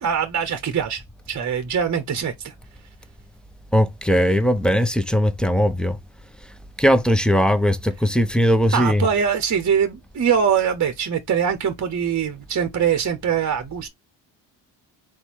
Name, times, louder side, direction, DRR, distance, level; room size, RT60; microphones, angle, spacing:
voice 1, 0.0-2.5 8.7-13.9, right 7 dB, 35° right, 0.9 m, -23 dB
voice 2, 3.7-6.0 6.8-9.0, equal, ahead, 0.7 m, -19 dB
4.1 x 2.3 x 4.5 m
hypercardioid pair, 55°, 49 cm